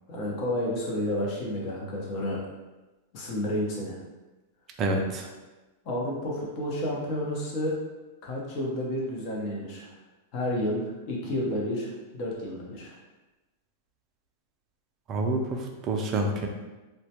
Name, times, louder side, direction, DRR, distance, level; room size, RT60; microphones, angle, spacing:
voice 1, 0.1-2.4 3.1-4.0 5.8-7.7 8.2-9.9 10.3-13.0, left 1 dB, 45° left, -3 dB, 0.7 m, -31 dB
voice 2, 4.8-5.3 15.1-16.5, right 2 dB, 30° right, 2 dB, 0.3 m, -28 dB
2.1 x 2.1 x 2.8 m, 1.1 s
supercardioid pair, 140°, 0 cm